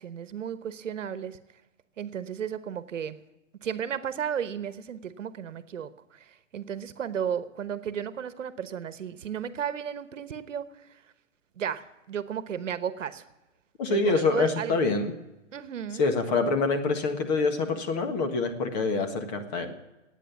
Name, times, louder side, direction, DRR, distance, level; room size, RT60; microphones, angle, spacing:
voice 1, 0.0-1.4 2.0-3.2 3.6-10.9 11.6-13.2 13.9-14.8 15.5-16.0, right 8 dB, 75° right, 13 dB, 1.1 m, -34 dB
voice 2, 13.8-15.1 16.0-19.7, left 3 dB, 35° left, 6 dB, 1.7 m, -26 dB
17.0 x 9.1 x 7.2 m, 1.0 s
hypercardioid pair, 150°, 38 cm